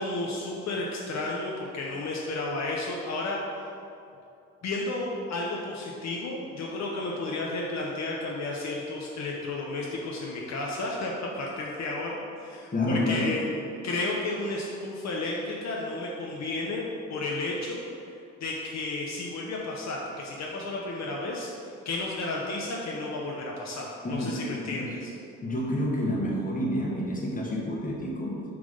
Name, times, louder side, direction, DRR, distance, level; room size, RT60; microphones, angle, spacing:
voice 1, 0.0-3.4 4.6-13.5 13.8-16.8 17.1-17.8 18.4-21.5 21.8-25.1, left 2 dB, 60° left, -2 dB, 0.8 m, -32 dB
voice 2, 12.7-13.3 24.0-24.9 25.4-28.4, left 1 dB, 25° left, -2 dB, 1.4 m, -29 dB
6.8 x 3.4 x 5.3 m, 2.6 s
cardioid pair, 90°, 30 cm